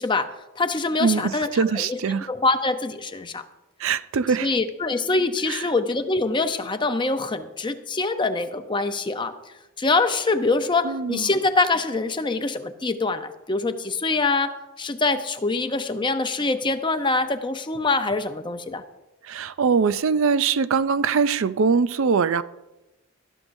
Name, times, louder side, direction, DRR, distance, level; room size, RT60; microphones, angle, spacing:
voice 1, 0.0-1.5 1.7-3.4 4.4-9.4 9.8-18.8, left 3 dB, 20° left, 8 dB, 0.6 m, -24 dB
voice 2, 1.0-2.3 3.8-4.6 5.5-5.6 10.8-11.3 19.2-22.4, right 5 dB, 60° right, 14 dB, 0.4 m, -22 dB
17.5 x 13.0 x 2.6 m, 0.99 s
head